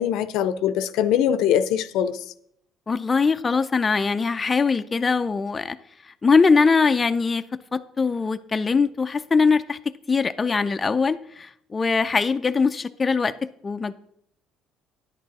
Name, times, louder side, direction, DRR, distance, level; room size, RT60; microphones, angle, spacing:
voice 1, 0.0-2.2, left 9 dB, 75° left, 0.6 m, -22 dB
voice 2, 2.9-5.8 6.2-7.4 7.7-9.8 10.1-13.3 13.6-13.9, left 4 dB, 25° left, 0.4 m, -21 dB
10.5 x 8.7 x 4.1 m
cardioid pair, 120°, 0 cm